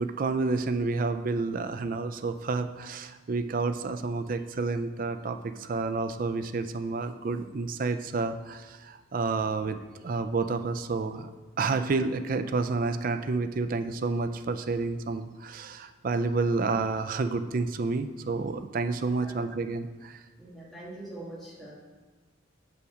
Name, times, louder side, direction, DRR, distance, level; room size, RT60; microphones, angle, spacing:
voice 1, 0.0-11.3 11.6-20.2, right 3 dB, 45° right, 9 dB, 0.4 m, -30 dB
voice 2, 20.4-21.7, right 1 dB, ahead, -7 dB, 1.9 m, -43 dB
6.4 x 5.7 x 4.9 m, 1.3 s
head